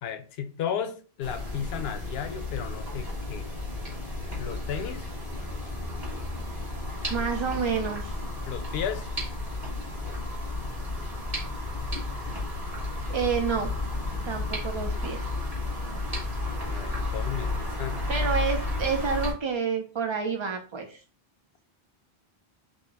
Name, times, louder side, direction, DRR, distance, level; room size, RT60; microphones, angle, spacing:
voice 1, 0.0-3.5 4.3-5.1 8.5-9.1 16.7-18.3, left 8 dB, 75° left, 0.8 m, -34 dB
sound 1, 1.2-19.3, left 2 dB, 35° right, 1.6 m, -32 dB
voice 2, 7.1-8.1 13.1-13.7 14.3-15.3 18.1-21.0, right 6 dB, 55° right, 0.3 m, -29 dB
4.2 x 3.2 x 3.3 m
omnidirectional pair, 1.1 m